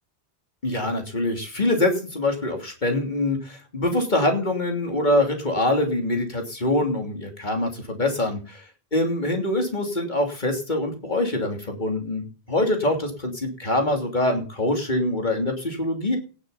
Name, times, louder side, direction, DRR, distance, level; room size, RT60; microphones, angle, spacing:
voice 1, 0.6-8.6 8.9-16.2, left 1 dB, 45° left, 3 dB, 3.1 m, -24 dB
17.5 x 6.7 x 5.7 m, 0.37 s
omnidirectional pair, 1.1 m